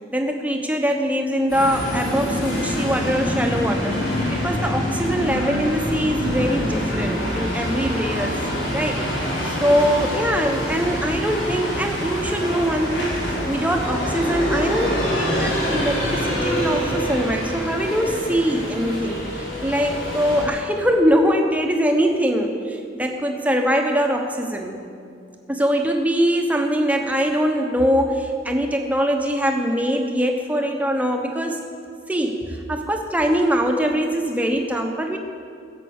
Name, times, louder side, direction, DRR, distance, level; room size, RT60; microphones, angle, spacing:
voice 1, 0.1-9.0 9.6-13.2 13.5-24.8 25.5-31.6 32.1-35.2, equal, 10° right, 3 dB, 1.0 m, -22 dB
sound 1, 1.5-20.5, equal, 80° left, 4.0 m, -25 dB
16.0 x 7.5 x 7.2 m, 2.5 s
head